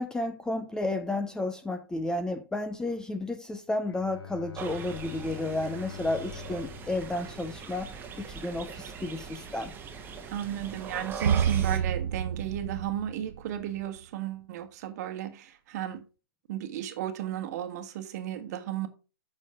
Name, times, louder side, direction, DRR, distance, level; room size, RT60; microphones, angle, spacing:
voice 1, 0.0-7.9 8.2-9.7, left 2 dB, 5° left, 0.6 m, -32 dB
Bowed string instrument, 3.8-8.3, left 11 dB, 80° left, 1.4 m, -46 dB
sound 1, 4.5-11.8, right 6 dB, 15° right, 1.5 m, -41 dB
voice 2, 10.3-16.0 16.5-18.9, right 11 dB, 45° right, 1.4 m, -34 dB
sound 2, 11.2-13.8, right 8 dB, 75° right, 0.5 m, -28 dB
8.4 x 6.5 x 4.9 m
hypercardioid pair, 140°, 13 cm